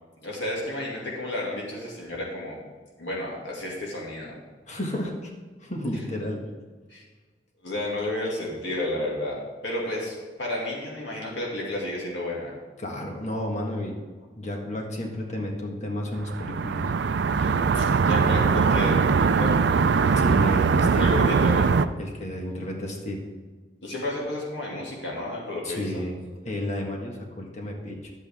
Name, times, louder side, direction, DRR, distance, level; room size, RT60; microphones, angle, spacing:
voice 1, 0.2-2.6 3.0-4.3 6.9-7.0 7.6-9.4 9.6-12.5 17.4-19.6 21.0-21.7 23.8-26.0, left 1 dB, 75° left, -3 dB, 2.3 m, -31 dB
voice 2, 4.7-5.3 5.6-6.4 12.8-14.0 14.4-16.9 20.1-21.1 22.0-23.2 25.6-26.2 26.4-28.1, left 1 dB, 40° left, 1 dB, 1.6 m, -32 dB
sound 1, 16.2-21.9, right 5 dB, 65° right, 0.4 m, -21 dB
11.0 x 8.1 x 3.6 m, 1.4 s
head